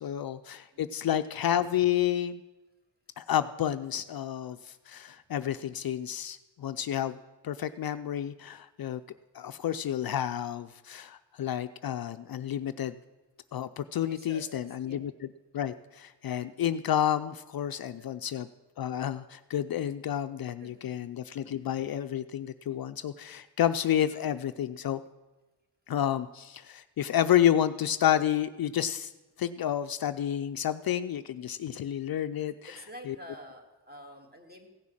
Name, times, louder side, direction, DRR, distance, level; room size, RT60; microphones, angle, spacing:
voice 1, 0.0-2.4 3.2-7.2 7.4-9.0 9.3-13.0 13.5-15.1 15.5-18.5 18.8-25.0 25.9-29.1 29.4-32.8 33.1-33.2, left 10 dB, 55° left, 11 dB, 0.5 m, -30 dB
voice 2, 14.0-15.0 17.8-18.1 20.4-21.0 32.4-34.7, equal, 20° right, 4 dB, 2.0 m, -49 dB
15.5 x 6.3 x 7.3 m, 1.1 s
cardioid pair, 85°, 43 cm